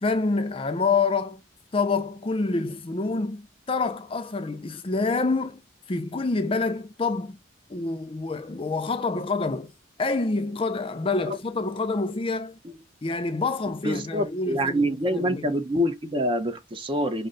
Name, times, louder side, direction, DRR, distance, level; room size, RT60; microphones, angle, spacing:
voice 1, 0.0-1.4 1.7-5.6 5.9-7.4 7.7-9.7 10.0-12.6 13.0-15.5, left 3 dB, 30° left, 0.4 m, -27 dB
voice 2, 13.8-17.3, equal, 25° right, 0.7 m, -26 dB
5.3 x 2.1 x 3.7 m
head